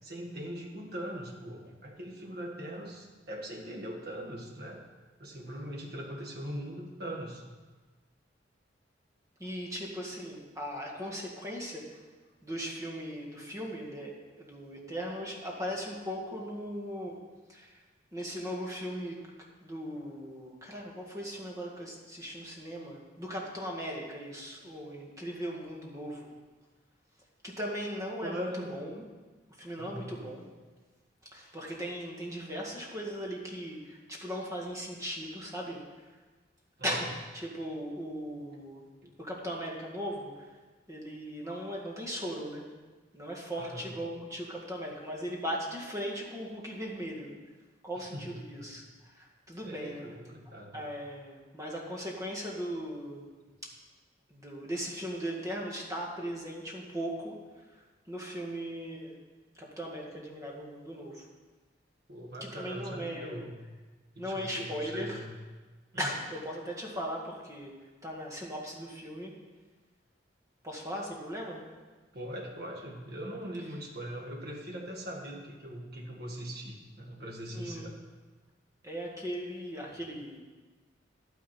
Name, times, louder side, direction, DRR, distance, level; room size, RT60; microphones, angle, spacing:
voice 1, 0.0-4.8 5.2-7.4 28.2-28.7 29.8-30.1 36.8-36.9 39.0-39.1 43.6-43.9 48.0-48.7 49.6-50.9 62.1-63.5 64.1-65.3 65.9-66.1 72.1-78.0, equal, 60° right, 0 dB, 1.8 m, -41 dB
voice 2, 9.4-12.0 12.4-17.2 17.5-17.8 18.1-19.1 19.6-26.3 27.4-29.0 29.6-30.5 31.2-35.8 36.8-38.9 39.2-40.5 40.9-42.6 43.1-47.3 47.8-50.1 50.7-53.3 53.6-53.7 54.3-59.2 59.6-61.3 62.4-63.4 64.2-65.2 66.0-67.7 68.0-69.3 70.6-71.6 77.5-77.9 78.8-80.4, equal, 20° right, -2 dB, 1.9 m, -38 dB
11.0 x 9.5 x 4.4 m, 1.3 s
head